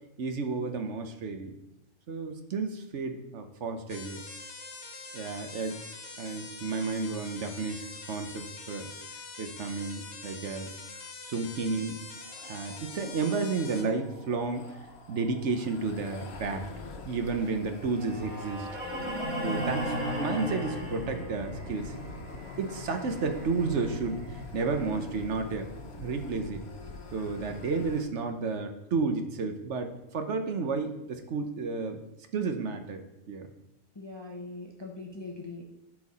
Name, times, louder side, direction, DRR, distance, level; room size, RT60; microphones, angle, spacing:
voice 1, 0.2-1.6 2.1-4.2 5.1-5.8 6.2-8.9 9.4-10.7 11.2-12.0 12.4-14.8 15.1-16.7 17.0-18.7 19.4-22.0 22.6-25.7 26.0-26.6 27.1-32.0 32.3-33.0 33.3-33.5, right 4 dB, 60° right, 6 dB, 1.1 m, -32 dB
sound 1, 3.9-13.8, left 4 dB, 55° left, 1.3 m, -44 dB
sound 2, 12.2-28.0, left 3 dB, 85° left, 1.4 m, -45 dB
sound 3, 17.9-26.0, equal, 85° right, 2.4 m, -37 dB
voice 2, 33.9-35.6, left 3 dB, 25° left, 0 dB, 0.8 m, -41 dB
13.0 x 4.7 x 4.2 m, 0.90 s
omnidirectional pair, 1.5 m